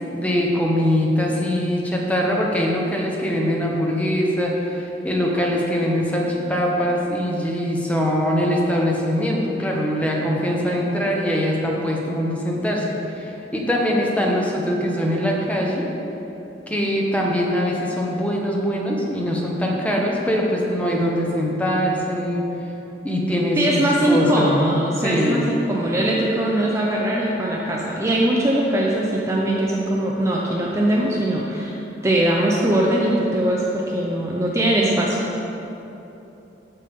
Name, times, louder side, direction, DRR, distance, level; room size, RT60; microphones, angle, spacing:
voice 1, 0.1-15.9 16.7-22.4 23.0-25.5, equal, 10° left, -2 dB, 1.1 m, -22 dB
voice 2, 23.6-31.7 32.0-35.2, right 1 dB, 15° right, -3 dB, 0.7 m, -21 dB
14.0 x 5.4 x 3.7 m, 3.0 s
head